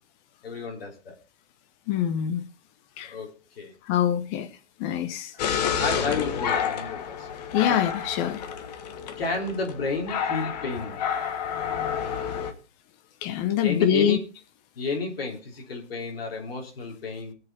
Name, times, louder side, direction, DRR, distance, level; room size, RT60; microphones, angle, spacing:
voice 1, 0.4-1.1 3.1-3.7 5.3-5.4 5.7-7.3 7.7-7.8 9.2-11.0 13.6-14.2 14.8-17.3, left 3 dB, 55° left, 3.6 m, -32 dB
voice 2, 1.9-2.4 3.0-3.1 3.9-4.5 4.8-5.3 7.5-8.4 13.2-14.2, left 9 dB, 20° left, 0.7 m, -24 dB
sound 1, 5.4-12.5, left 8 dB, 35° left, 1.5 m, -29 dB
19.0 x 6.8 x 4.2 m
figure-of-eight pair, 120°, 34 cm